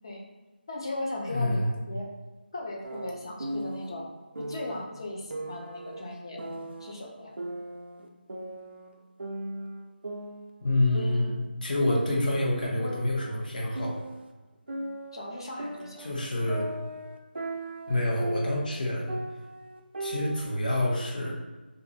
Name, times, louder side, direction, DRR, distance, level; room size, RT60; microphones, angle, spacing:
voice 1, 0.7-1.6 1.9-2.1 2.5-4.0 4.4-6.4 6.8-7.3 14.8-16.1, left 1 dB, 25° left, -1 dB, 0.4 m, -37 dB
voice 2, 1.3-1.8 10.6-11.3 11.6-14.0 16.0-16.7 17.9-19.2 20.0-21.3, left 1 dB, 50° left, -3 dB, 0.8 m, -27 dB
sound 1, 2.8-3.9 4.4-4.8 5.3-6.9 7.4-8.9 9.2-10.7 10.9-11.5 11.9-14.3 14.7-18.8 19.1-20.4, right 1 dB, 75° right, 0.4 m, -38 dB
3.0 x 2.5 x 2.7 m, 1.2 s
figure-of-eight pair, 175°, 6 cm